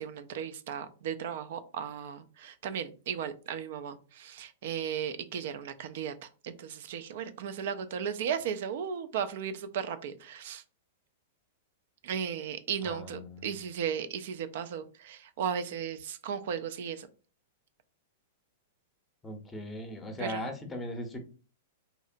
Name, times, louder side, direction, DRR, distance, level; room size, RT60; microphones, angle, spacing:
voice 1, 0.0-10.6 12.0-17.1 20.2-20.5, right 8 dB, 60° right, 11 dB, 0.3 m, -36 dB
voice 2, 12.8-13.5 19.2-21.2, left 1 dB, 10° left, 4 dB, 0.6 m, -38 dB
2.8 x 2.0 x 2.5 m, 0.36 s
hypercardioid pair, 110°, 0 cm